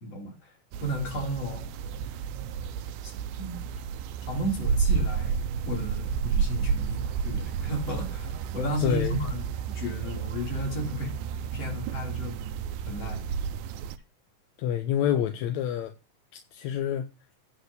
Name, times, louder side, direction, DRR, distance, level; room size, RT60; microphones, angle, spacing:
voice 1, 0.0-0.5 0.8-1.7 3.4-3.6 4.3-9.5 9.7-11.2 11.5-12.4 12.9-13.2, equal, 50° left, 4.0 m, -33 dB
sound 1, 0.7-14.0, right 6 dB, 85° right, 2.1 m, -31 dB
voice 2, 8.8-9.2 14.6-15.9 16.5-17.1, left 10 dB, 75° left, 2.0 m, -27 dB
10.0 x 4.3 x 6.7 m
omnidirectional pair, 3.6 m